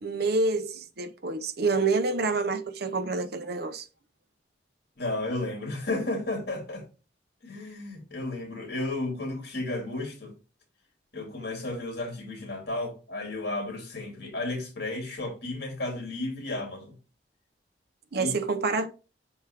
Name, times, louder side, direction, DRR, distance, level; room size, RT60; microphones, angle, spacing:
voice 1, 0.0-3.9 18.1-18.9, right 3 dB, 60° right, 0.9 m, -27 dB
voice 2, 5.0-6.8 7.4-10.3 11.1-16.9 18.1-18.3, left 2 dB, 65° left, 2.6 m, -33 dB
6.3 x 4.6 x 3.5 m
head